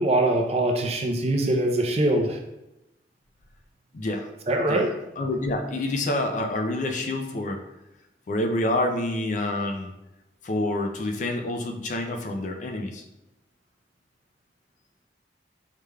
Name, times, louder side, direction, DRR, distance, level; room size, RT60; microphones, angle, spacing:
voice 1, 0.0-2.4 4.5-4.9, right 1 dB, 35° right, 2 dB, 0.5 m, -23 dB
voice 2, 3.9-4.3 4.7-4.9 5.2-7.6 8.3-9.9 10.4-13.0, left 1 dB, 45° left, 4 dB, 0.4 m, -27 dB
4.8 x 3.2 x 2.2 m, 0.93 s
head